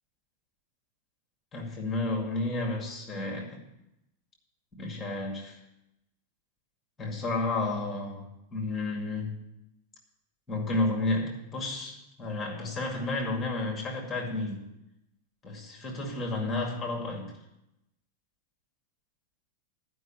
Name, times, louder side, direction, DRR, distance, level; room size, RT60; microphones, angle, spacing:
voice 1, 1.5-3.6 4.7-5.6 7.0-9.4 10.5-14.7 15.4-17.4, left 2 dB, 10° left, 0 dB, 2.2 m, -32 dB
11.0 x 5.4 x 8.7 m, 0.87 s
supercardioid pair, 170°, 0 cm